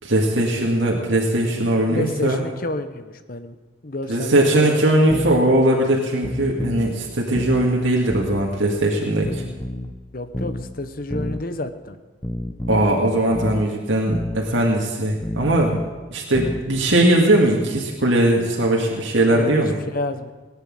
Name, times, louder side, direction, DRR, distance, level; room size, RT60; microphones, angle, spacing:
voice 1, 0.0-2.4 4.1-9.4 12.7-15.7 16.1-19.7, right 1 dB, 80° right, -2 dB, 2.0 m, -19 dB
voice 2, 1.9-3.6 3.8-4.7 10.1-12.0 19.3-19.6 19.9-20.3, left 2 dB, 50° left, 10 dB, 1.0 m, -29 dB
sound 1, 5.1-5.4 6.2-6.9 7.3-7.7 8.1-8.4 9.2-9.9 10.3-10.7 11.1-11.4 12.2-12.9 13.3-13.7 14.1-14.4 15.2-15.9 16.3-16.7, left 1 dB, 15° left, 0.8 m, -29 dB
19.0 x 9.7 x 7.6 m, 1.3 s
head